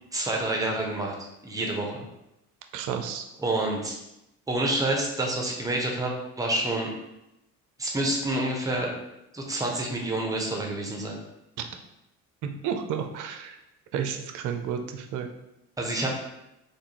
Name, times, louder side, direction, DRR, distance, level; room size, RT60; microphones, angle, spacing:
voice 1, 0.1-1.1 1.4-2.1 3.4-4.0 4.5-6.9 7.8-8.9 9.3-11.2 15.8-16.1, right 1 dB, 10° right, 0 dB, 0.8 m, -28 dB
voice 2, 2.7-3.2 11.6-11.7 12.6-13.6 13.9-15.3, right 8 dB, 45° right, 6 dB, 0.5 m, -31 dB
3.6 x 2.4 x 2.9 m, 0.88 s
figure-of-eight pair, 50°, 43 cm